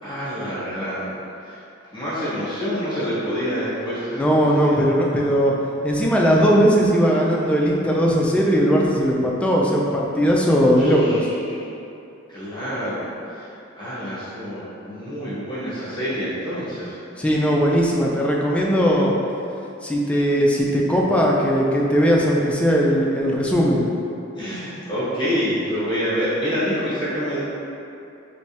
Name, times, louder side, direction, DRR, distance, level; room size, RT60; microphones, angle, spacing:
voice 1, 0.0-1.1 1.4-1.6 1.9-4.8 10.8-11.6 12.3-13.5 13.8-17.0 24.4-27.4, equal, 25° left, -12 dB, 1.0 m, -27 dB
voice 2, 4.2-5.5 5.8-11.3 17.2-19.1 19.8-23.9, equal, 5° left, -3 dB, 0.3 m, -18 dB
3.3 x 3.0 x 2.8 m, 2.7 s
head